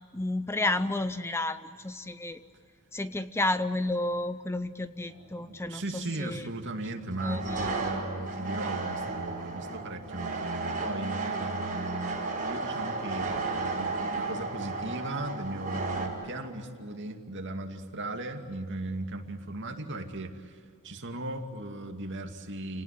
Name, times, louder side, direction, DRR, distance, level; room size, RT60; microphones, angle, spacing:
voice 1, 0.1-2.4 2.9-6.4 7.2-7.7, left 2 dB, 10° left, 12 dB, 0.6 m, -31 dB
sound 1, 5.1-5.3 7.1-16.1, right 3 dB, 40° right, 4.8 m, -33 dB
voice 2, 5.5-22.8, right 2 dB, 55° right, 4 dB, 2.5 m, -37 dB
29.0 x 18.5 x 9.9 m, 2.2 s
head